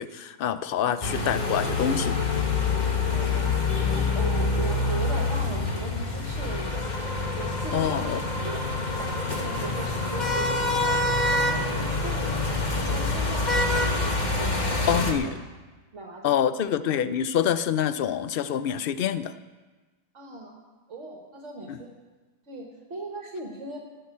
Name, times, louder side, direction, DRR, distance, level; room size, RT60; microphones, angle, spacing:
voice 1, 0.0-2.2 7.7-8.2 14.9-15.3 16.2-19.3 21.7-21.8, left 9 dB, 60° left, 13 dB, 0.6 m, -26 dB
sound 1, 1.0-15.1, left 3 dB, 35° left, 1.4 m, -26 dB
voice 2, 3.0-3.6 3.8-6.8 7.3-8.7 8.9-11.0 11.3-12.4 12.7-15.4 15.9-16.5 20.1-20.6 20.9-21.9 22.5-23.8, right 2 dB, 60° right, 1 dB, 1.7 m, -38 dB
17.5 x 6.1 x 8.4 m, 1.3 s
omnidirectional pair, 1.4 m